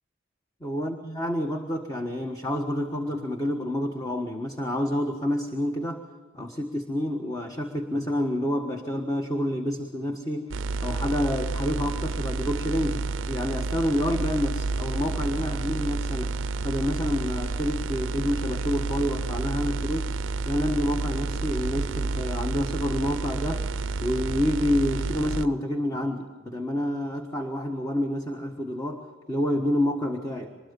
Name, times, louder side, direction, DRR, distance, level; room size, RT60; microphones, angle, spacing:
voice 1, 0.6-6.0 6.3-10.5 10.8-16.3 16.6-20.1 20.4-23.7 24.0-30.6, left 1 dB, 20° left, 3 dB, 1.4 m, -28 dB
sound 1, 10.5-25.5, right 3 dB, 80° right, 0.5 m, -30 dB
24.5 x 21.5 x 5.4 m, 1.5 s
head